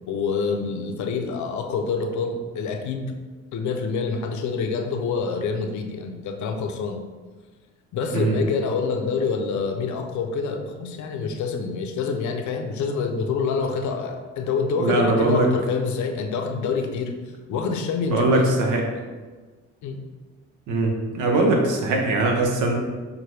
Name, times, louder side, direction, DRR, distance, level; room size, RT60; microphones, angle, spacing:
voice 1, 0.1-3.1 3.5-7.0 7.9-17.2 17.5-18.5 19.8-20.0, left 5 dB, 70° left, 4 dB, 0.6 m, -26 dB
voice 2, 14.8-15.5 18.1-18.8 20.7-22.7, right 2 dB, 85° right, 1 dB, 0.8 m, -21 dB
5.9 x 2.2 x 3.2 m, 1.4 s
cardioid pair, 90°, 30 cm